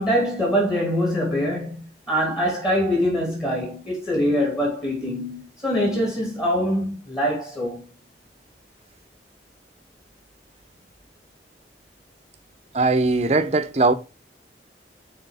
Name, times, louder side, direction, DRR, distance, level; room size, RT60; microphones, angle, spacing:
voice 1, 0.0-7.9, equal, 20° left, 2.3 m, -24 dB
voice 2, 12.7-13.9, right 3 dB, 35° right, 0.7 m, -19 dB
6.7 x 4.4 x 4.8 m
head